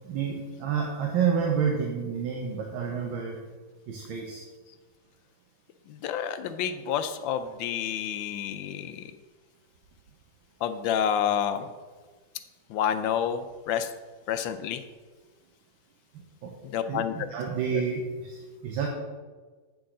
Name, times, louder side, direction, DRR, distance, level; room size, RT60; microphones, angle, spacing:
voice 1, 0.0-3.4 3.9-4.4 16.1-16.5 16.8-18.9, right 6 dB, 80° right, 0 dB, 1.7 m, -29 dB
voice 2, 5.9-9.1 10.6-11.7 12.7-13.9 14.3-14.8 16.6-17.1 17.7-17.8, left 9 dB, 80° left, 9 dB, 1.3 m, -29 dB
9.4 x 6.2 x 3.8 m, 1.4 s
omnidirectional pair, 2.1 m